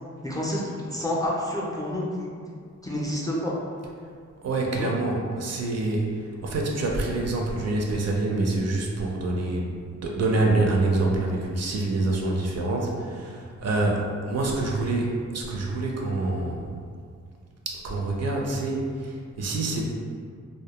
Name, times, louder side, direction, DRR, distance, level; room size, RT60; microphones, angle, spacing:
voice 1, 0.2-2.4 2.8-3.6 4.8-4.9, left 1 dB, 10° left, -5 dB, 0.3 m, -29 dB
voice 2, 4.4-9.8 10.0-16.7 17.7-19.8, right 2 dB, 55° right, -1 dB, 0.4 m, -26 dB
2.1 x 2.1 x 2.9 m, 2.1 s
wide cardioid pair, 95°, 30 cm